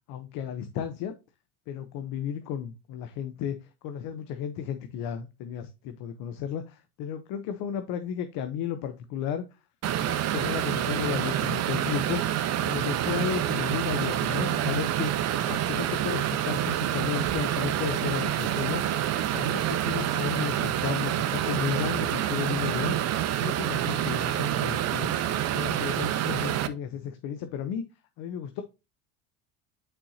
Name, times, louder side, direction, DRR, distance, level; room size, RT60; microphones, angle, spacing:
voice 1, 0.1-1.1 1.7-3.6 3.8-9.5 10.0-12.4 12.6-15.1 15.5-18.8 19.3-22.9 23.4-25.1 25.5-27.8 28.2-28.6, left 9 dB, 60° left, 8 dB, 0.9 m, -33 dB
sound 1, 9.8-26.7, right 11 dB, 40° right, 0.8 m, -27 dB
8.9 x 4.5 x 2.8 m, 0.27 s
supercardioid pair, 100°, 38 cm